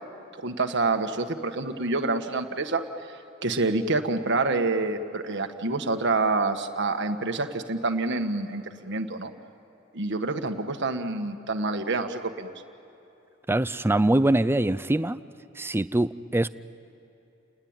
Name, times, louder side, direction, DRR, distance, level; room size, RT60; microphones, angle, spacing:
voice 1, 0.3-3.2 3.4-9.3 9.9-12.5, right 3 dB, 60° right, 6 dB, 1.6 m, -27 dB
voice 2, 13.5-15.2 15.6-16.5, right 1 dB, 10° right, 14 dB, 0.5 m, -23 dB
29.5 x 20.0 x 9.0 m, 3.0 s
head